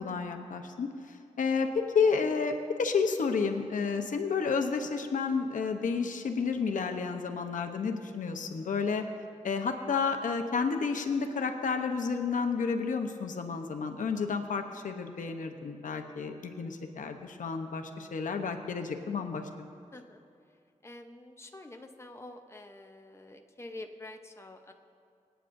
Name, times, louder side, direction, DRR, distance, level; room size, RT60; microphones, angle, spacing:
voice 1, 0.0-2.5 2.8-9.0 9.4-19.4, left 5 dB, 90° left, 5 dB, 0.9 m, -31 dB
voice 2, 15.9-16.3 19.9-20.2 20.8-24.7, left 2 dB, 20° left, 5 dB, 0.8 m, -47 dB
27.0 x 9.1 x 2.6 m, 2.4 s
cardioid pair, 65°, 13 cm